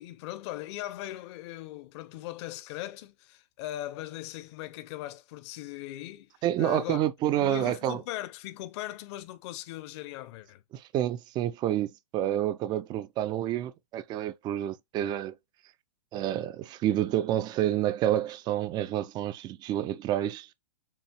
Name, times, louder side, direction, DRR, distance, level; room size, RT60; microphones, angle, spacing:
voice 1, 0.0-7.0 7.4-10.6, left 15 dB, 40° left, 0.7 m, -39 dB
voice 2, 6.4-8.0 10.7-15.3 16.1-20.5, right 12 dB, 20° right, 0.4 m, -29 dB
7.2 x 2.4 x 2.9 m
hypercardioid pair, 125°, 21 cm